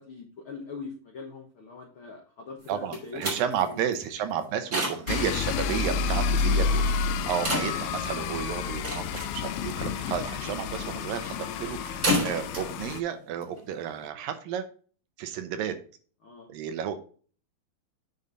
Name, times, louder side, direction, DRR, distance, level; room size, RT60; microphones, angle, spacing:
voice 1, 0.0-3.9 5.2-6.1 16.2-16.5, left 4 dB, 70° left, 1 dB, 1.2 m, -42 dB
sound 1, 2.6-14.1, equal, 25° right, 4.5 m, -34 dB
voice 2, 2.7-14.7 15.2-15.8 16.5-17.0, right 9 dB, 75° right, 9 dB, 2.5 m, -32 dB
sound 2, 5.1-13.0, left 5 dB, 85° left, 2.6 m, -29 dB
8.9 x 5.6 x 3.9 m, 0.41 s
omnidirectional pair, 4.2 m